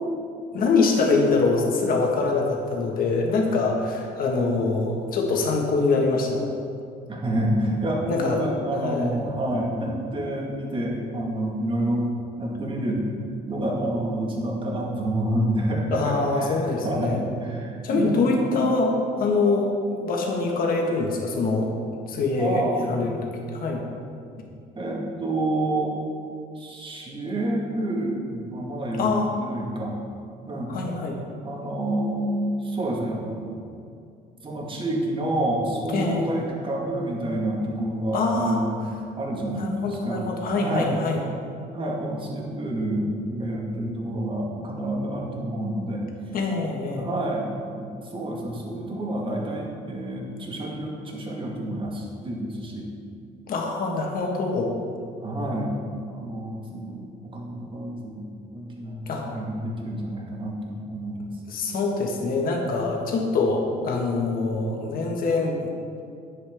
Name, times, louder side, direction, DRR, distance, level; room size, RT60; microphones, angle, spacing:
voice 1, 0.5-6.4 8.1-8.5 8.8-9.2 15.9-17.2 17.8-21.7 22.1-23.2 23.5-23.8 29.0-29.3 30.7-31.2 35.9-36.4 38.1-38.6 39.5-41.2 46.3-47.1 53.5-54.7 59.1-59.4 61.5-65.7, left 3 dB, 60° left, 0 dB, 1.7 m, -24 dB
voice 2, 7.1-12.1 12.4-13.0 13.5-18.3 22.4-23.0 24.8-26.0 26.6-29.1 29.4-29.9 30.5-30.8 31.4-33.5 34.4-38.8 39.2-40.2 40.5-40.9 41.7-46.0 46.9-52.9 55.2-55.8 56.1-61.3, right 1 dB, 30° right, -2 dB, 1.8 m, -28 dB
10.0 x 8.0 x 3.6 m, 2.5 s
cardioid pair, 110°, 17 cm